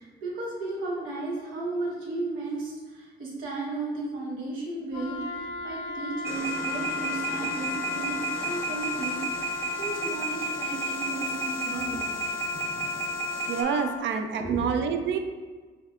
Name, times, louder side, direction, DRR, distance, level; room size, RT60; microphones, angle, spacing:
voice 1, 0.0-12.1 14.4-14.6, right 2 dB, 85° right, -3 dB, 1.1 m, -34 dB
Wind instrument woodwind instrument, 4.9-14.0, left 5 dB, 75° left, 0.5 m, -35 dB
Wind instrument woodwind instrument 2, 5.1-11.1, left 2 dB, 40° right, 0.8 m, -49 dB
sound 1, 6.2-13.6, right 3 dB, 15° right, 0.6 m, -33 dB
voice 2, 13.5-15.2, right 6 dB, 70° right, 6 dB, 0.4 m, -27 dB
5.3 x 2.8 x 2.4 m, 1.4 s
cardioid pair, 90°, 20 cm